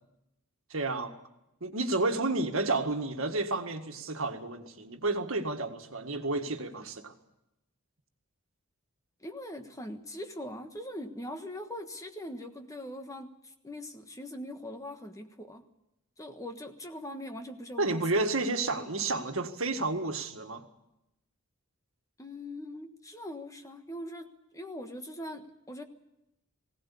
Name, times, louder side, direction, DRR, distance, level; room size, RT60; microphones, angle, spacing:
voice 1, 0.7-1.1 1.6-7.1 17.8-20.6, right 2 dB, 70° right, 6 dB, 1.8 m, -31 dB
voice 2, 9.2-15.7 16.2-18.1 22.2-25.8, left 1 dB, 15° left, 6 dB, 1.4 m, -41 dB
20.0 x 17.5 x 8.5 m, 0.86 s
head